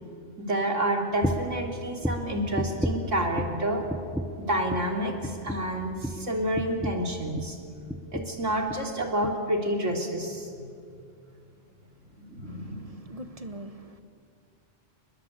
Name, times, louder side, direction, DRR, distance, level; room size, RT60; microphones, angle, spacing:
voice 1, 0.4-3.8 4.5-7.6 8.1-10.7 12.1-13.0, right 1 dB, 90° right, 3.7 m, -29 dB
sound 1, 1.2-1.6 2.0-3.6 3.9-4.4 4.7-4.9 5.2-7.6 7.9-8.4 8.7-8.9 9.2-9.4, equal, ahead, 0.9 m, -33 dB
voice 2, 12.5-14.0, right 1 dB, 30° right, 1.4 m, -43 dB
29.5 x 20.5 x 8.3 m
omnidirectional pair, 1.2 m